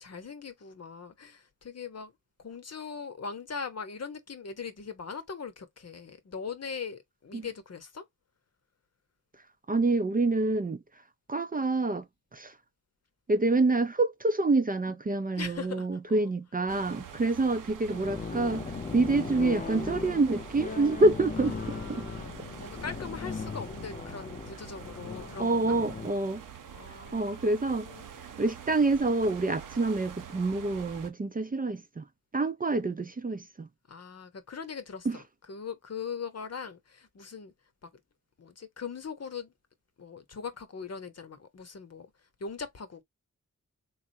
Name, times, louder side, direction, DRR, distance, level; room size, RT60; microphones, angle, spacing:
voice 1, 0.0-2.1 2.4-8.1 15.4-16.3 17.4-17.6 21.4-25.8 26.7-28.1 33.9-37.5 37.8-37.9 38.4-39.5 40.0-42.1 42.4-43.0, left 5 dB, 55° left, 0.9 m, -41 dB
voice 2, 9.7-10.8 11.3-12.0 12.3-12.5 13.3-22.0 25.4-26.4 27.1-27.9 28.4-32.0 32.3-33.7 35.1-35.2, right 2 dB, 30° right, 0.5 m, -27 dB
sound 1, 16.7-31.1, right 8 dB, 85° right, 0.7 m, -46 dB
sound 2, 17.9-26.1, left 5 dB, 25° left, 0.3 m, -38 dB
3.6 x 3.2 x 2.6 m
wide cardioid pair, 70°, 31 cm